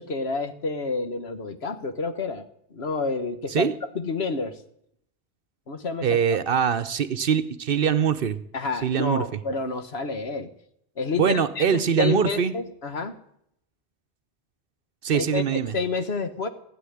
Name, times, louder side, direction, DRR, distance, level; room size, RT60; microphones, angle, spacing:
voice 1, 0.0-3.7 3.9-4.6 5.7-6.2 8.5-10.5 11.0-13.2 15.1-16.5, left 4 dB, 70° left, 9 dB, 1.6 m, -29 dB
voice 2, 6.0-8.4 8.8-9.3 11.2-12.5 15.0-15.7, right 7 dB, 60° right, 15 dB, 0.9 m, -23 dB
16.5 x 7.8 x 9.9 m, 0.73 s
omnidirectional pair, 1.1 m